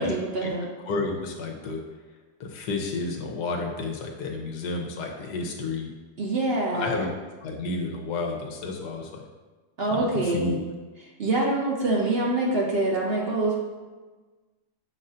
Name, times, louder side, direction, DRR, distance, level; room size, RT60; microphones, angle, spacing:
voice 1, 0.0-0.7 6.2-7.0 9.8-10.6 11.2-13.6, right 2 dB, 50° right, -2 dB, 0.8 m, -25 dB
voice 2, 0.9-1.8 2.4-5.9 6.7-7.1 7.4-9.2 9.8-10.6, left 3 dB, 85° left, 2 dB, 1.4 m, -31 dB
7.2 x 2.6 x 5.4 m, 1.3 s
omnidirectional pair, 1.8 m